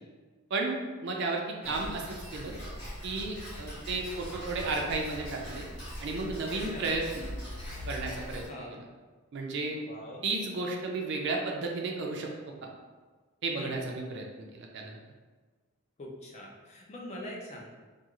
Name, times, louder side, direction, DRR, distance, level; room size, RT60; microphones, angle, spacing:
voice 1, 0.5-2.5 3.0-5.7 6.0-7.2 7.9-8.4 8.7-8.8 9.3-9.8 10.2-12.3 13.4-15.0, right 3 dB, 55° right, 1 dB, 0.4 m, -33 dB
Tick-tock, 1.6-8.5, equal, 90° left, 1.3 m, -41 dB
voice 2, 6.5-6.8 8.5-8.8 9.9-10.2 13.6-13.8 16.0-17.7, left 1 dB, 30° left, -2 dB, 0.4 m, -43 dB
2.4 x 2.3 x 2.9 m, 1.4 s
head